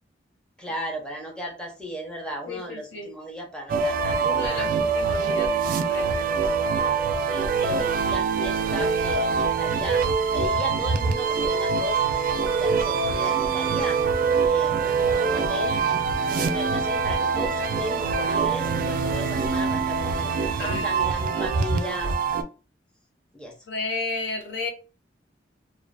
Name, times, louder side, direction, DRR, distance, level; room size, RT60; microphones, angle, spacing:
voice 1, 0.6-4.7 7.3-10.0 10.3-14.0 14.5-20.3 20.6-22.4 23.3-23.5, equal, 5° left, 0.6 m, -36 dB
voice 2, 2.5-3.1 4.2-5.6 5.8-6.2 20.6-20.9 21.2-21.7 23.7-24.7, left 3 dB, 75° left, 0.6 m, -33 dB
sound 1, 3.7-22.4, right 5 dB, 50° right, 0.3 m, -24 dB
2.4 x 2.3 x 2.2 m
head